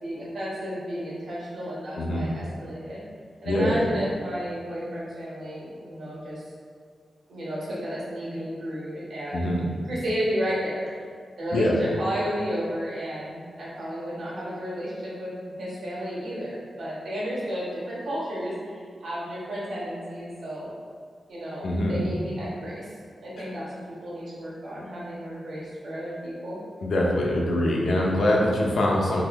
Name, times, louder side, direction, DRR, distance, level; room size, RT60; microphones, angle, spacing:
voice 1, 0.0-3.0 3.4-6.4 7.3-9.5 9.8-11.0 11.4-15.3 15.6-20.7 21.3-22.9 23.2-26.6, equal, 75° right, -7 dB, 1.1 m, -32 dB
voice 2, 2.0-2.3 3.4-3.8 9.3-9.7 11.5-11.8 21.6-22.0 26.8-29.2, left 1 dB, 70° left, -2 dB, 0.5 m, -23 dB
3.9 x 2.6 x 2.2 m, 2.1 s
wide cardioid pair, 160°, 0 cm